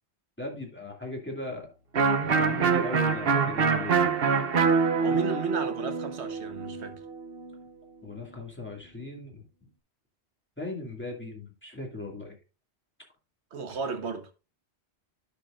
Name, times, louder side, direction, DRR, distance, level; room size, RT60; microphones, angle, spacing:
voice 1, 0.4-1.7 2.2-4.0 8.0-9.4 10.6-12.4 13.7-13.8, left 2 dB, 10° left, 2.2 m, -38 dB
Electric guitar, 1.9-7.6, right 5 dB, 60° right, 1.1 m, -25 dB
voice 2, 5.0-7.0 13.5-14.3, right 5 dB, 80° right, 1.4 m, -34 dB
11.0 x 6.4 x 2.5 m
omnidirectional pair, 1.1 m